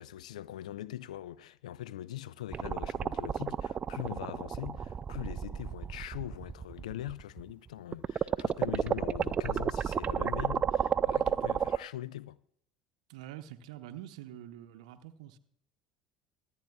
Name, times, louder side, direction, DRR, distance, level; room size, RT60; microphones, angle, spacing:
voice 1, 0.0-12.4, left 13 dB, 70° left, 0.3 m, -41 dB
sound 1, 2.5-7.5 7.9-11.8, right 7 dB, 30° right, 0.3 m, -31 dB
voice 2, 13.1-15.4, right 12 dB, 65° right, 0.7 m, -46 dB
25.0 x 9.1 x 2.3 m
figure-of-eight pair, 65°, 4 cm